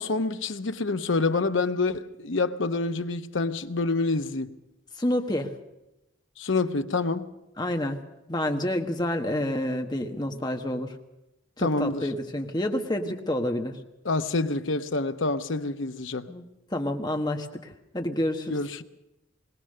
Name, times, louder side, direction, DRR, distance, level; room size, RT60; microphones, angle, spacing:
voice 1, 0.0-4.5 6.4-7.3 11.6-12.0 14.0-16.3 18.5-18.8, left 3 dB, 75° left, 0.9 m, -27 dB
voice 2, 5.0-5.5 7.6-8.0 8.3-10.9 11.6-13.8 16.3-18.6, left 1 dB, 20° left, 1.4 m, -29 dB
21.5 x 18.5 x 6.7 m
head